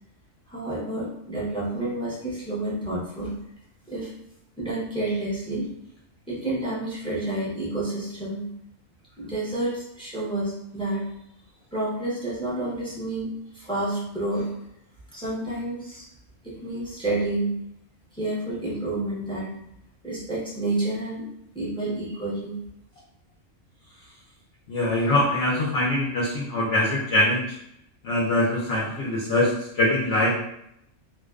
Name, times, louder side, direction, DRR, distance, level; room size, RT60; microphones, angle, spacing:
voice 1, 0.5-3.3 3.9-4.1 4.6-5.7 6.3-8.5 9.2-11.1 11.7-14.5 15.1-16.1 16.4-17.5 18.1-19.6 20.0-21.2 21.5-22.6, right 2 dB, 5° left, -7 dB, 0.4 m, -29 dB
voice 2, 24.7-27.4 28.0-30.3, left 1 dB, 65° left, -5 dB, 0.7 m, -23 dB
2.5 x 2.1 x 2.3 m, 0.78 s
omnidirectional pair, 1.4 m